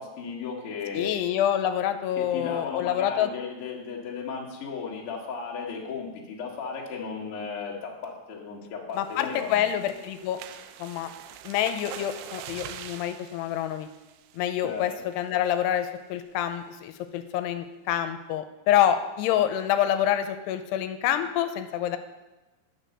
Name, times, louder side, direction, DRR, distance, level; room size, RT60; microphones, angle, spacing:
voice 1, 0.0-1.1 2.2-9.6 14.6-14.9, left 5 dB, 50° left, -1 dB, 1.7 m, -35 dB
voice 2, 0.9-3.3 9.0-10.4 10.8-11.1 11.4-13.9 14.3-22.0, left 11 dB, 85° left, 9 dB, 2.7 m, -27 dB
sound 1, 8.9-14.7 15.1-15.4 15.7-15.8 16.2-16.5, right 10 dB, 90° right, 2.7 m, -44 dB
9.3 x 6.4 x 6.6 m, 1.1 s
omnidirectional pair, 4.7 m